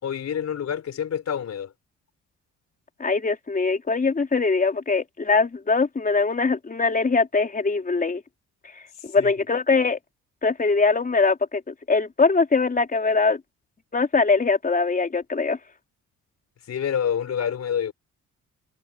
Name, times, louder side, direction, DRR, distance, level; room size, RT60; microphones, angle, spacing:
voice 1, 0.0-1.7 9.2-9.3 16.7-17.9, left 8 dB, 60° left, 5.5 m, -27 dB
voice 2, 3.0-8.2 9.0-10.0 10.4-13.4 13.9-15.6, left 4 dB, 30° left, 4.0 m, -22 dB
cardioid pair, 90°, 30 cm